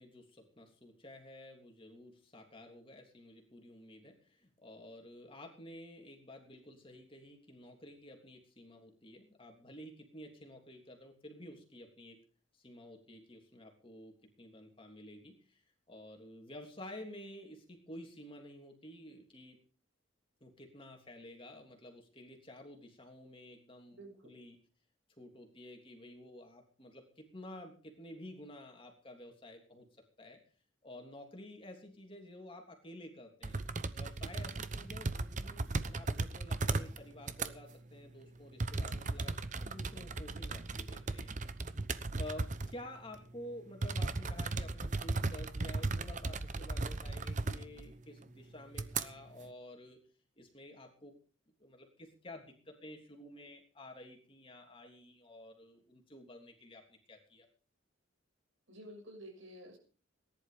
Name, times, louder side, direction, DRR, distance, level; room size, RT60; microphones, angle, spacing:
voice 1, 0.0-12.2 12.5-15.6 15.9-19.6 20.4-24.6 25.2-30.4 30.8-33.6 33.9-41.3 42.2-50.0 50.4-51.1 51.6-57.5, left 1 dB, 25° left, 2 dB, 3.2 m, -51 dB
voice 2, 23.9-24.4 58.7-59.8, right 1 dB, 75° right, 2 dB, 6.8 m, -51 dB
sound 1, 33.4-37.0 37.2-37.5 38.6-42.8 43.1-43.2 43.8-47.9 48.2-48.3 48.7-49.0, right 3 dB, 40° right, 0.9 m, -36 dB
18.5 x 11.0 x 5.1 m, 0.40 s
head